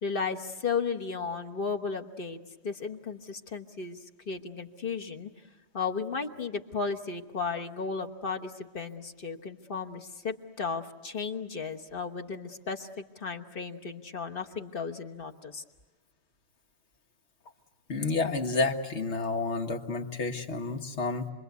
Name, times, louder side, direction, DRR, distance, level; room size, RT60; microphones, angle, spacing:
voice 1, 0.0-4.0 4.3-5.3 5.7-15.6, left 5 dB, 55° left, 5 dB, 1.4 m, -34 dB
voice 2, 17.9-21.3, left 3 dB, 80° left, 5 dB, 1.7 m, -30 dB
28.5 x 22.0 x 8.2 m, 1.2 s
omnidirectional pair, 1.1 m